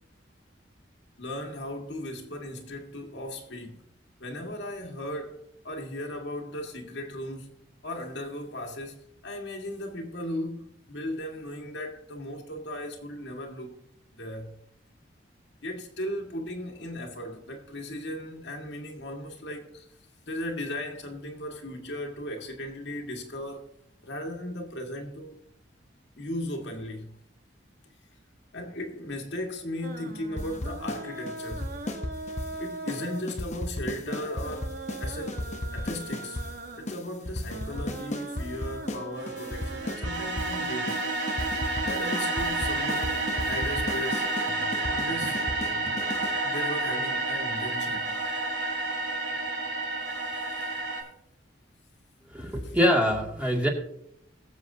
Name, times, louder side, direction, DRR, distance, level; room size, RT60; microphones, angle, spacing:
voice 1, 1.2-3.9 4.2-7.6 7.8-13.8 14.1-14.5 15.6-19.8 20.3-23.7 24.0-25.4 26.2-27.2 28.5-31.7 32.6-35.4 35.7-36.4 36.7-41.0 41.8-44.4 44.9-45.4 46.4-48.3 50.5-50.6, left 1 dB, 65° left, 1.8 m, -37 dB
sound 1, 29.8-40.0, right 2 dB, 50° right, 1.1 m, -41 dB
sound 2, 30.4-31.0 31.3-32.5 32.9-33.0 33.3-36.5 36.9-37.0 37.2-39.0 39.3-40.5 40.9-41.0 41.3-46.4, left 1 dB, 40° left, 0.9 m, -34 dB
sound 3, 39.2-51.0, right 2 dB, 85° right, 4.9 m, -30 dB
voice 2, 52.3-53.7, equal, 5° right, 2.2 m, -24 dB
21.0 x 7.6 x 2.7 m
head